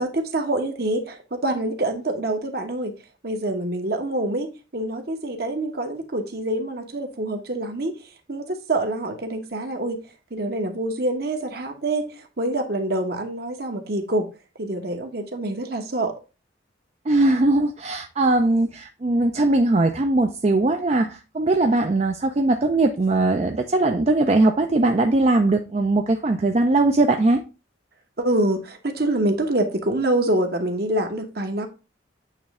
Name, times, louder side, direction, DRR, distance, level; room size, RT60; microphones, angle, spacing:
voice 1, 0.0-2.9 3.2-7.9 8.3-10.0 10.3-14.3 14.6-16.1 28.2-31.7, right 1 dB, 55° right, 1.1 m, -26 dB
voice 2, 17.1-27.4, right 2 dB, 35° right, 0.4 m, -20 dB
8.5 x 3.1 x 3.6 m
head